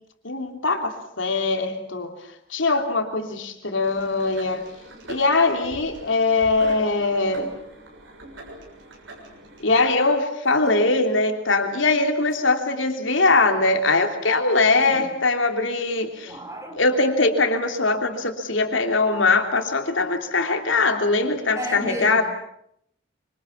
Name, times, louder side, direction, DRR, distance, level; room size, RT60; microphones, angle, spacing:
voice 1, 0.2-0.9 1.2-2.1 2.5-4.7 5.1-7.5 9.6-16.3 16.7-22.2, left 3 dB, 75° left, 3.2 m, -21 dB
sound 1, 3.8-9.7, right 1 dB, 75° right, 6.9 m, -41 dB
voice 2, 14.8-15.1 16.2-16.8 21.5-22.2, equal, 15° right, 4.9 m, -33 dB
26.5 x 26.0 x 7.2 m
head